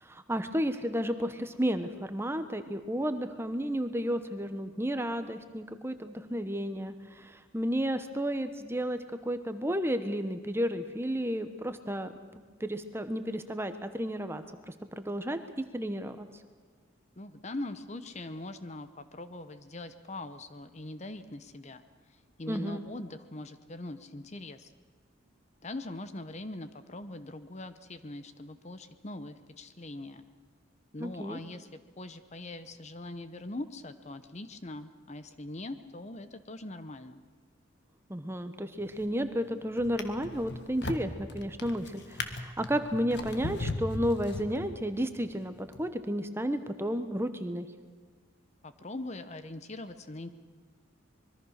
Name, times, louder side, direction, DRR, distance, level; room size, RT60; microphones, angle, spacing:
voice 1, 0.0-12.1 12.6-16.3 22.5-22.9 31.0-31.4 38.1-47.7, equal, 10° right, 9 dB, 1.1 m, -32 dB
voice 2, 17.2-24.7 25.6-30.2 30.9-37.2 48.6-50.3, left 2 dB, 35° left, 11 dB, 0.9 m, -42 dB
Drawer open or close, 38.8-39.2 39.8-45.0 45.7-45.8, left 2 dB, 55° left, 1.6 m, -38 dB
25.0 x 22.0 x 6.5 m, 1.5 s
head